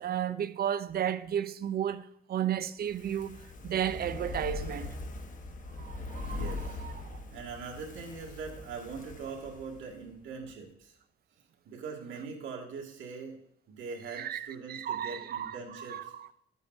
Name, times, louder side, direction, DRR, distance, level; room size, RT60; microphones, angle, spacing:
voice 1, 0.0-3.3 3.6-4.9 5.8-6.4 6.8-6.9 14.2-15.5 15.9-16.0, right 10 dB, 50° right, 0.5 m, -33 dB
Fire, 2.8-10.1 10.4-10.5, left 3 dB, 40° left, 1.2 m, -41 dB
voice 2, 6.3-6.8 7.3-11.0 11.7-13.4 13.7-16.1, right 5 dB, 75° right, 2.1 m, -42 dB
12.0 x 8.2 x 2.7 m
cardioid pair, 90°, 20 cm